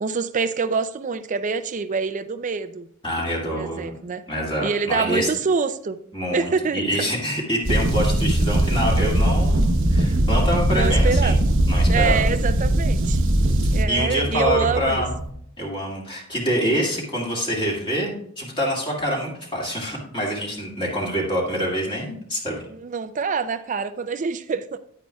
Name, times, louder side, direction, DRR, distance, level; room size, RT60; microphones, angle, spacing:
voice 1, 0.0-2.9 3.5-4.2 4.6-6.0 6.3-7.1 10.7-11.4 11.8-13.2 13.7-15.0 22.7-24.8, right 5 dB, 35° right, 11 dB, 0.4 m, -25 dB
voice 2, 3.0-4.0 4.3-5.3 6.1-11.4 11.7-12.2 13.9-15.1 15.6-22.6, equal, 25° left, -3 dB, 2.2 m, -26 dB
sound 1, 7.6-13.8, right 1 dB, 65° right, 0.9 m, -20 dB
sound 2, 7.7-15.3, right 1 dB, 75° left, 3.0 m, -29 dB
9.9 x 9.2 x 2.3 m, 0.66 s
head